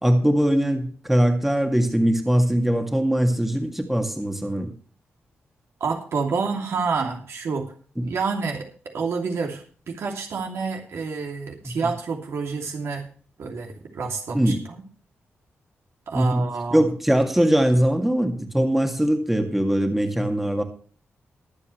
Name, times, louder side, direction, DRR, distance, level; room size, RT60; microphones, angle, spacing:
voice 1, 0.0-4.7 8.0-8.1 14.3-14.6 16.1-16.4 16.7-20.6, equal, 5° right, 4 dB, 2.0 m, -21 dB
voice 2, 5.8-7.7 8.0-8.7 8.9-13.0 13.4-14.8 16.1-16.9, right 4 dB, 70° right, 1 dB, 2.8 m, -28 dB
22.0 x 8.4 x 3.2 m, 0.42 s
wide cardioid pair, 140°, 5 cm